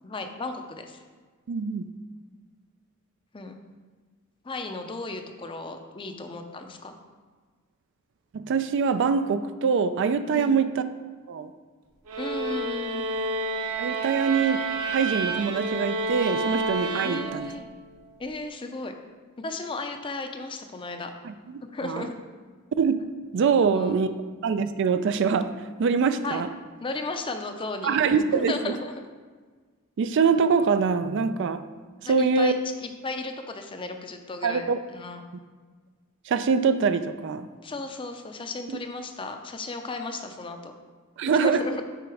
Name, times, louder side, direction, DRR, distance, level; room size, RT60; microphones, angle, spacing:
voice 1, 0.0-1.0 3.3-3.5 4.4-6.9 10.3-10.6 12.2-13.1 17.0-17.7 18.2-18.9 19.4-21.1 21.6-22.1 23.8-24.0 26.2-26.4 26.8-28.0 28.3-29.0 32.0-32.6 32.8-34.6 34.9-35.2 37.6-40.7 41.3-41.8, left 3 dB, 25° left, 6 dB, 0.5 m, -35 dB
voice 2, 1.5-1.9 8.3-10.8 11.3-11.5 13.8-14.7 14.9-17.5 21.2-22.1 22.8-23.1 23.3-24.1 24.4-26.5 27.8-28.7 30.0-31.6 32.0-32.5 34.4-34.8 36.3-37.5 38.7-38.8 41.2-41.6, right 5 dB, 55° right, 11 dB, 0.3 m, -24 dB
sound 1, 12.1-17.7, right 2 dB, 85° right, 0.8 m, -29 dB
7.6 x 4.0 x 4.8 m, 1.5 s
head